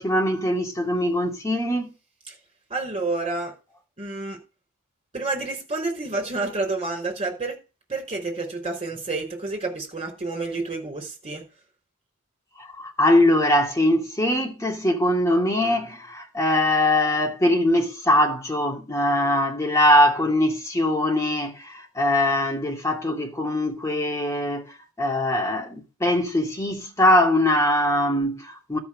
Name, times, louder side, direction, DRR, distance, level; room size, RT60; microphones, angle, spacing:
voice 1, 0.0-1.9 12.6-28.8, left 1 dB, 15° left, 2.3 m, -22 dB
voice 2, 2.7-3.5 4.0-4.4 5.1-7.6 7.9-11.4, right 3 dB, 25° right, 5.2 m, -29 dB
13.0 x 6.0 x 6.3 m
head